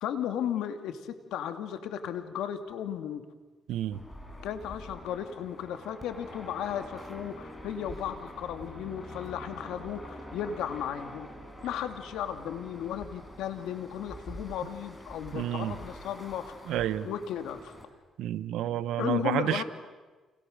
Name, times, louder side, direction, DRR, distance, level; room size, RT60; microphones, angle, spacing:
voice 1, 0.0-3.2 4.4-11.3 11.6-16.7 17.0-17.7 19.0-19.6, left 9 dB, 90° left, 2.4 m, -35 dB
voice 2, 3.7-4.0 15.3-15.8 16.7-17.1 18.2-19.6, right 12 dB, 85° right, 1.3 m, -30 dB
sound 1, 3.9-17.9, equal, 15° left, 5.9 m, -46 dB
29.5 x 29.5 x 6.7 m
cardioid pair, 90°, 0 cm